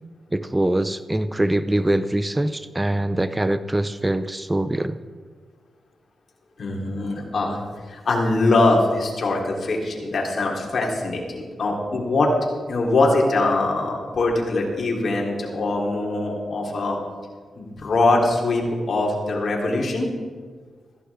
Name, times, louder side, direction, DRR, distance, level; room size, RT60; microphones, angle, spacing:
voice 1, 0.3-5.0, right 1 dB, 15° right, 12 dB, 0.6 m, -23 dB
voice 2, 6.6-7.6 7.9-12.3 12.7-17.0 17.6-20.1, left 2 dB, 65° left, -1 dB, 3.5 m, -22 dB
16.0 x 15.0 x 3.7 m, 1.5 s
cardioid pair, 60°, 0 cm